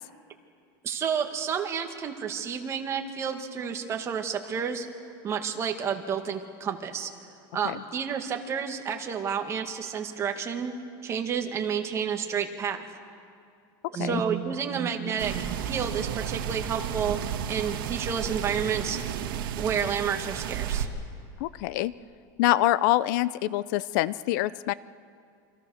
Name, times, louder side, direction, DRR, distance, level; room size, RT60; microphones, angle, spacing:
voice 1, 0.8-4.9 5.2-7.1 7.5-10.8 11.0-12.9 13.9-17.2 17.5-19.0 19.5-20.9, right 7 dB, 25° right, 4 dB, 2.0 m, -30 dB
sound 1, 15.2-20.9, right 9 dB, 80° right, 1.9 m, -32 dB
voice 2, 21.4-21.9 22.4-24.7, left 16 dB, 60° left, 18 dB, 0.5 m, -25 dB
28.0 x 25.5 x 6.5 m, 2.4 s
supercardioid pair, 155°, 11 cm